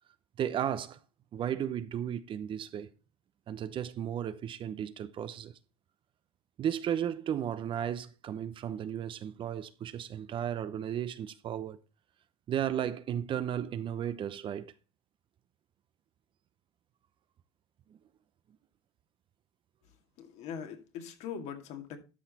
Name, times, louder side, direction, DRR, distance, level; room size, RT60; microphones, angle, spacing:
voice 1, 0.4-1.0 1.3-2.9 3.5-5.5 6.6-11.8 12.5-14.7, right 9 dB, 40° right, 0.9 m, -34 dB
voice 2, 19.8-22.0, left 7 dB, 60° left, 2.3 m, -42 dB
12.5 x 5.9 x 4.2 m
supercardioid pair, 100°, 13 cm